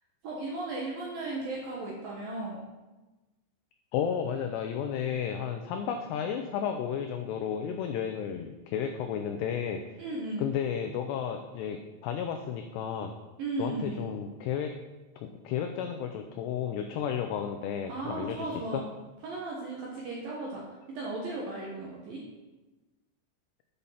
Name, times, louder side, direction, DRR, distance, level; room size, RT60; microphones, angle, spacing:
voice 1, 0.2-2.6 10.0-10.5 13.4-14.1 17.9-18.8 19.2-22.2, right 2 dB, 70° right, -3 dB, 2.2 m, -36 dB
voice 2, 3.9-9.8 10.4-13.1 13.6-14.7 15.2-18.8, left 8 dB, 90° left, 5 dB, 2.4 m, -33 dB
8.5 x 5.4 x 5.6 m, 1.1 s
omnidirectional pair, 5.5 m